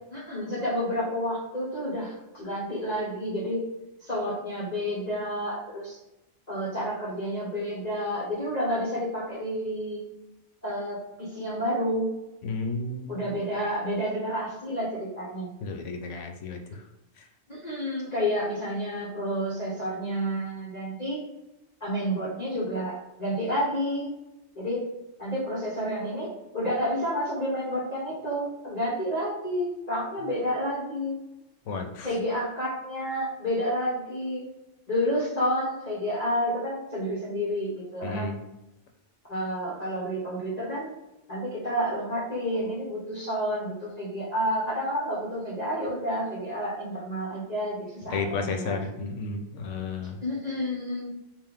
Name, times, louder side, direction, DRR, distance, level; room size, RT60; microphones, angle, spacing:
voice 1, 0.1-3.7 4.0-6.0 6.5-10.0 10.6-12.1 13.1-15.5 17.5-21.2 21.8-24.1 24.5-24.8 25.2-31.1 32.0-34.4 34.9-38.3 39.3-41.0 41.3-48.8 50.2-51.1, equal, 35° left, -7 dB, 1.2 m, -30 dB
voice 2, 12.4-13.3 15.6-16.6 17.2-17.3 31.7-32.1 38.0-38.4 48.1-50.2, left 4 dB, 85° left, 5 dB, 1.1 m, -32 dB
5.5 x 2.5 x 3.6 m, 0.94 s
omnidirectional pair, 1.2 m